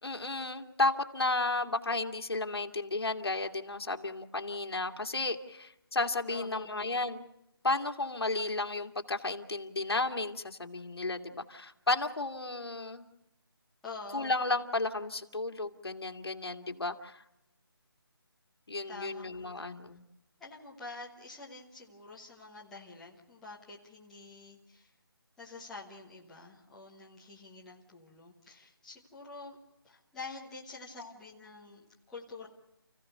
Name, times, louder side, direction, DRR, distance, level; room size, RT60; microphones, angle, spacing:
voice 1, 0.0-7.3 7.6-13.1 14.1-17.2 18.7-20.0, left 2 dB, 75° left, 4 dB, 2.3 m, -33 dB
voice 2, 6.3-6.8 13.8-14.3 18.9-19.7 20.4-24.9 25.4-29.6 29.8-32.5, left 3 dB, 5° left, -6 dB, 1.2 m, -47 dB
30.0 x 16.0 x 6.7 m, 0.89 s
figure-of-eight pair, 175°, 13 cm